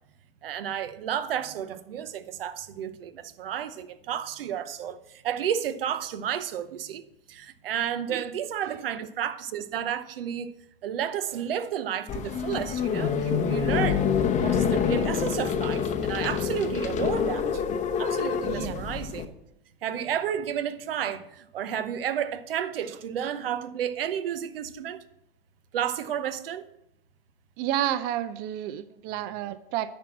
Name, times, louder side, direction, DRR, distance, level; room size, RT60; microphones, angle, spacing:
voice 1, 0.4-7.0 7.3-10.5 10.8-14.0 14.4-17.6 18.0-19.3 19.8-25.0 25.7-26.6, right 9 dB, 75° right, 0.9 m, -31 dB
sound 1, 12.1-19.2, left 7 dB, 25° left, 0.8 m, -26 dB
voice 2, 18.4-18.8 27.6-30.0, right 11 dB, 35° right, 0.5 m, -31 dB
10.0 x 4.5 x 7.3 m
hypercardioid pair, 115°, 29 cm